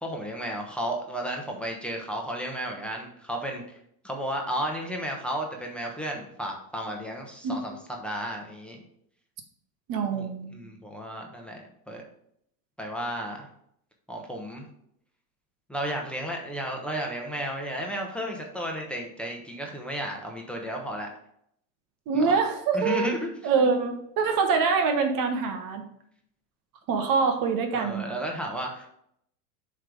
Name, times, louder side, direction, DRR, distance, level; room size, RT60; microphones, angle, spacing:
voice 1, 0.0-3.8 4.0-8.8 10.1-12.0 12.8-13.5 14.1-14.6 15.7-21.1 22.1-22.3 22.7-23.3 27.7-28.9, equal, ahead, 0 dB, 1.1 m, -33 dB
voice 2, 9.9-10.6 22.1-23.1 23.4-25.8 26.9-28.0, right 5 dB, 45° right, 6 dB, 1.0 m, -25 dB
7.5 x 3.3 x 5.0 m, 0.71 s
hypercardioid pair, 105°, 48 cm